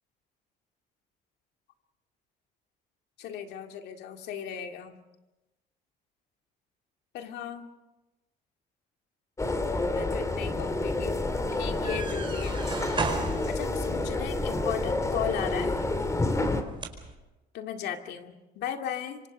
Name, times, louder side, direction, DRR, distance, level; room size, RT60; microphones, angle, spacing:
voice 1, 3.2-5.0 7.1-7.7 9.9-11.2 11.6-12.6 13.5-15.8 17.5-19.2, left 9 dB, 80° left, 5 dB, 2.3 m, -36 dB
sound 1, 9.4-16.6, left 2 dB, 20° left, 2.6 m, -29 dB
sound 2, 11.6-17.1, right 4 dB, 30° right, 4.7 m, -37 dB
26.5 x 24.5 x 5.4 m, 1.0 s
cardioid pair, 110°, 17 cm